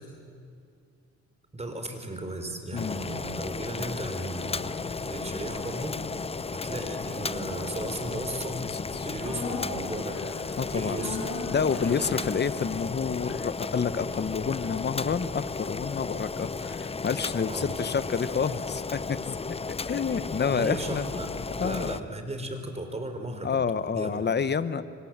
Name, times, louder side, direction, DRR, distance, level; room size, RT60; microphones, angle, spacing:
voice 1, 1.5-6.1 6.6-8.6 9.0-10.2 10.7-11.2 11.9-12.3 17.5-17.9 20.5-21.3 21.6-23.6 23.9-24.2, right 2 dB, 20° right, 6 dB, 4.0 m, -36 dB
Boiling, 2.8-22.0, left 4 dB, 20° left, 0.7 m, -34 dB
voice 2, 8.6-9.1 10.6-11.0 11.5-19.4 19.7-21.2 21.6-22.0 23.4-24.8, left 6 dB, 35° left, 13 dB, 1.1 m, -29 dB
sound 1, 9.2-17.5 17.8-17.9, left 3 dB, 65° left, 6.1 m, -41 dB
26.5 x 25.0 x 7.5 m, 2.3 s
cardioid pair, 90°, 30 cm